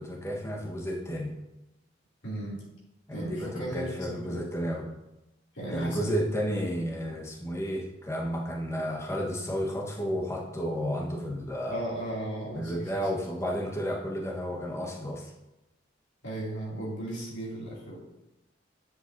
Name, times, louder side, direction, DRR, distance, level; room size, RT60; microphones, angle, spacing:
voice 1, 0.0-1.3 3.1-4.9 5.7-11.8 12.5-15.3, equal, 15° left, -1 dB, 1.3 m, -32 dB
voice 2, 2.2-2.6 3.1-4.5 5.5-6.1 11.7-13.2 16.2-18.0, right 1 dB, 65° left, -6 dB, 2.8 m, -36 dB
10.0 x 7.7 x 2.7 m, 0.95 s
head